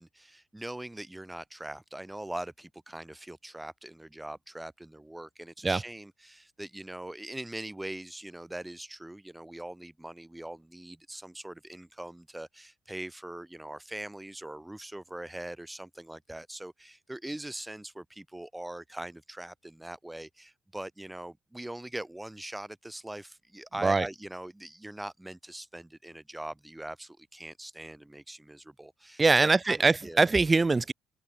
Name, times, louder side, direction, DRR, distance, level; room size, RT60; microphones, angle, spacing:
voice 1, 0.0-30.2, right 1 dB, 10° right, 1.2 m, -42 dB
voice 2, 29.2-30.9, right 3 dB, 25° right, 0.3 m, -23 dB
open air
hypercardioid pair, 55°, 0 cm